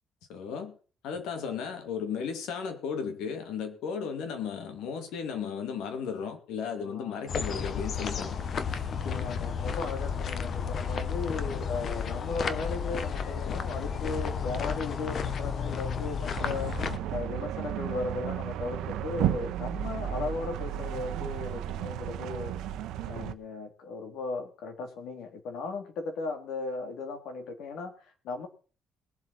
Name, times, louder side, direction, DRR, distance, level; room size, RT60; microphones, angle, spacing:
voice 1, 0.3-0.8 1.0-8.4 8.7-8.8, left 6 dB, 85° left, 8 dB, 2.4 m, -35 dB
voice 2, 6.8-7.3 8.8-16.7 17.1-22.6 23.1-28.5, left 3 dB, 70° left, 6 dB, 2.9 m, -36 dB
sound 1, 7.3-17.0, left 6 dB, 40° left, 0.9 m, -32 dB
sound 2, 16.4-23.3, right 11 dB, 80° right, 0.9 m, -33 dB
21.0 x 7.8 x 4.2 m, 0.38 s
cardioid pair, 170°, 0 cm